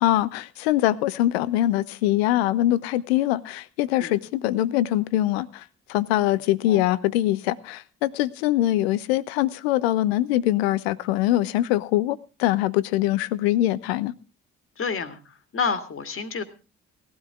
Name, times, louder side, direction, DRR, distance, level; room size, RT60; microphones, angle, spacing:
voice 1, 0.0-5.6 5.9-14.1, left 14 dB, 75° left, 18 dB, 0.7 m, -23 dB
voice 2, 14.8-16.4, left 5 dB, 40° left, 9 dB, 1.9 m, -29 dB
18.0 x 12.5 x 3.6 m, 0.33 s
figure-of-eight pair, 45°, 32 cm